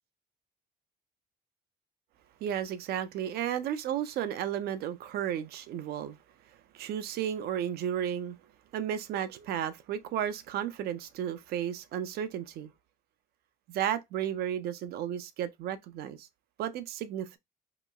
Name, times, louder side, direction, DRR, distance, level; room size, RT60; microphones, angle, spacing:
voice 1, 2.4-6.2 6.7-8.4 8.7-12.7 13.7-16.3 16.6-17.4, right 10 dB, 70° right, 0.5 m, -33 dB
3.0 x 2.9 x 2.2 m
cardioid pair, 110°, 17 cm